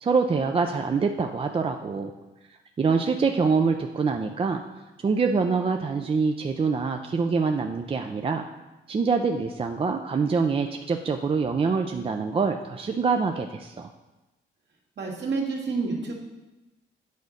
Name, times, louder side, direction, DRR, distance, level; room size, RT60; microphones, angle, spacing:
voice 1, 0.0-2.1 2.8-4.6 5.0-8.4 8.9-13.9, right 5 dB, 30° right, 5 dB, 0.4 m, -25 dB
voice 2, 15.0-16.1, right 4 dB, 60° right, -1 dB, 1.9 m, -28 dB
8.4 x 4.0 x 6.5 m, 1.1 s
cardioid pair, 90°, 20 cm